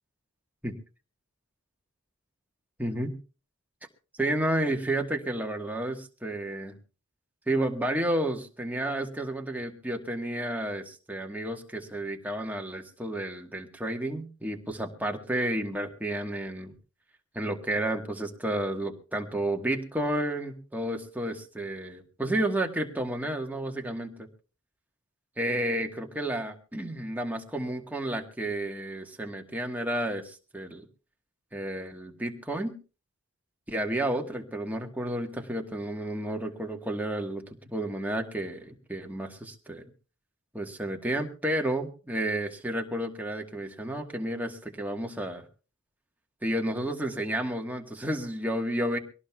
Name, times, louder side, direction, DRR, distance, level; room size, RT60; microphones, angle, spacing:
voice 1, 2.8-3.2 4.2-6.8 7.5-16.7 17.3-24.3 25.4-30.8 31.5-32.7 33.7-37.4 37.7-39.8 40.5-45.4 46.4-49.0, right 1 dB, 5° right, 2 dB, 1.4 m, -31 dB
23.5 x 18.0 x 2.3 m, 0.35 s
head